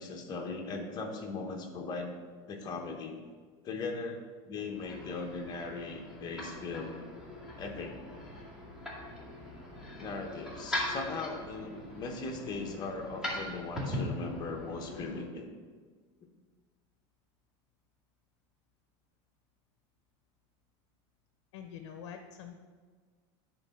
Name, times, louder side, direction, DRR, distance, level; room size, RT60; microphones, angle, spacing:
voice 1, 0.0-2.1 2.5-3.2 3.6-7.0 7.6-8.0 10.0-15.5, left 3 dB, 30° left, 3 dB, 1.1 m, -39 dB
sound 1, 4.6-15.2, left 1 dB, 5° right, 2.2 m, -40 dB
voice 2, 21.5-22.5, left 8 dB, 75° left, 6 dB, 0.8 m, -45 dB
10.5 x 3.9 x 5.7 m, 1.5 s
supercardioid pair, 150°, 14 cm